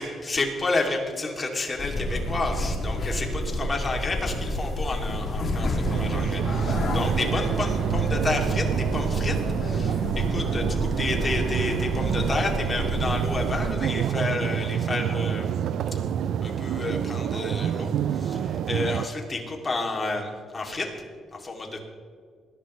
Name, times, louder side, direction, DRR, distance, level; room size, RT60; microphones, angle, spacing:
voice 1, 0.0-15.5 16.4-20.9 21.3-21.8, left 2 dB, 30° left, 2 dB, 2.7 m, -30 dB
sound 1, 1.8-13.7, left 1 dB, 55° left, 2.6 m, -30 dB
sound 2, 5.8-19.1, right 9 dB, 70° right, 0.4 m, -27 dB
20.0 x 11.0 x 3.2 m, 2.1 s
cardioid pair, 90°, 0 cm